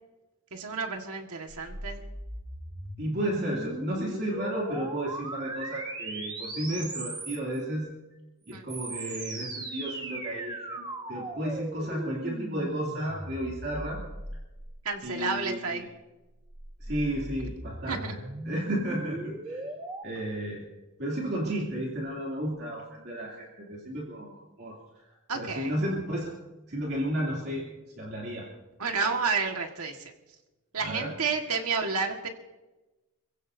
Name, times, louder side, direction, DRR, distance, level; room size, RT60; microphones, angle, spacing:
voice 1, 0.5-2.0 8.5-8.6 14.9-15.8 17.9-18.1 25.3-25.7 28.8-30.1 30.7-32.3, right 4 dB, 85° right, 3 dB, 1.7 m, -30 dB
sound 1, 1.5-7.6 8.5-15.1 16.1-20.0, right 1 dB, 20° right, 1.5 m, -39 dB
voice 2, 3.0-7.9 8.5-14.0 15.0-15.9 16.8-18.2 18.4-19.6 20.0-20.7 21.0-24.8 25.3-26.3 26.7-27.6 28.0-28.5 30.8-31.1, right 1 dB, 50° right, -3 dB, 2.9 m, -33 dB
28.0 x 16.0 x 2.7 m, 1.1 s
head